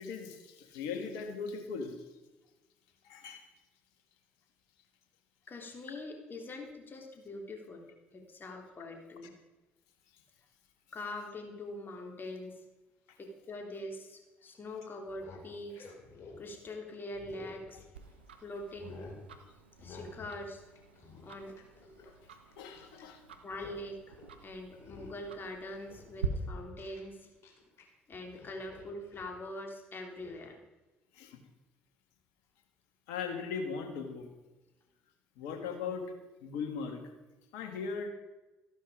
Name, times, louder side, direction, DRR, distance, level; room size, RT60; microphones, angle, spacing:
voice 1, 0.0-2.0 3.0-3.4 22.6-23.2 31.1-31.4 33.1-34.3 35.4-36.1 36.4-37.1 37.5-38.1, left 5 dB, 75° left, 5 dB, 2.0 m, -38 dB
voice 2, 5.5-9.4 10.9-12.6 13.2-15.9 16.4-17.8 18.4-19.0 19.8-20.6 21.2-21.9 23.4-24.2 24.4-27.3 28.1-30.6, left 1 dB, 40° left, 2 dB, 3.5 m, -43 dB
sound 1, 15.1-18.2 18.6-19.2 19.8-20.4 20.7-23.1 23.4-23.8 24.1-24.3 24.7-25.3 25.7-27.8 28.1-29.4 30.2-30.4, left 3 dB, 55° left, 3.7 m, -51 dB
Tick-tock, 17.9-26.3, right 7 dB, 90° right, 1.0 m, -46 dB
14.0 x 12.0 x 5.1 m, 1.1 s
hypercardioid pair, 55°, 6 cm